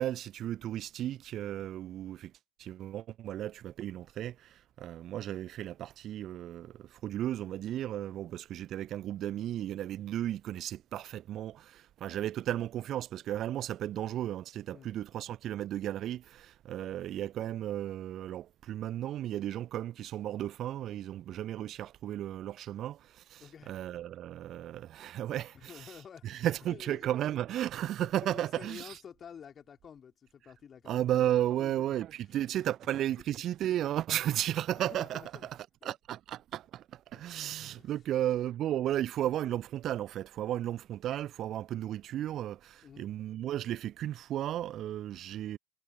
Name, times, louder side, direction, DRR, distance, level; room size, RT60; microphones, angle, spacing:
voice 1, 0.0-2.3 2.6-29.0 30.8-35.6 35.8-45.6, right 12 dB, 30° right, 0.7 m, -34 dB
voice 2, 23.4-23.8 25.5-27.1 28.0-31.3 31.5-31.9 32.5-32.7 34.8-35.5 35.8-35.9 37.1-38.0 42.8-43.1, left 7 dB, 20° left, 4.0 m, -50 dB
figure-of-eight pair, 90°, 0 cm